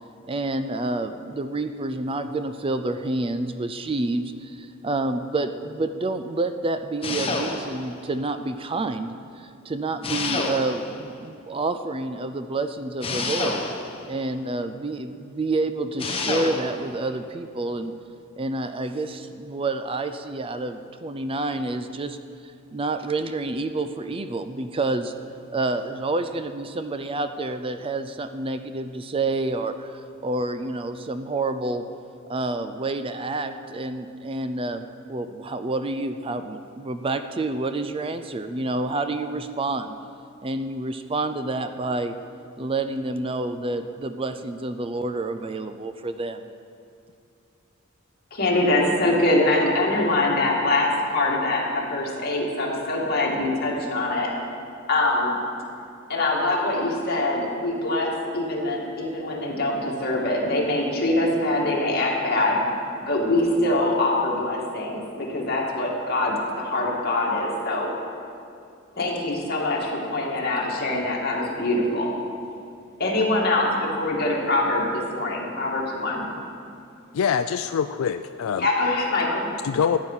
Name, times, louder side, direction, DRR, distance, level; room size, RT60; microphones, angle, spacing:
voice 1, 0.3-13.6 14.1-17.9 18.4-22.2 22.7-25.1 25.5-29.9 30.2-31.8 32.3-34.8 35.1-40.0 40.4-42.1 42.6-46.5, right 2 dB, 25° right, 9 dB, 0.4 m, -28 dB
sound 1, 7.0-7.9 10.0-11.0 13.0-14.0 16.0-16.8, left 3 dB, 25° left, 1.2 m, -28 dB
voice 2, 48.3-54.3 54.9-55.4 56.1-62.6 63.1-67.9 69.0-72.1 73.0-76.3 78.6-79.5, left 2 dB, 50° left, -3 dB, 2.3 m, -24 dB
voice 3, 77.1-78.7 79.6-80.0, left 7 dB, 80° left, 10 dB, 0.4 m, -24 dB
14.5 x 9.5 x 5.6 m, 2.6 s
head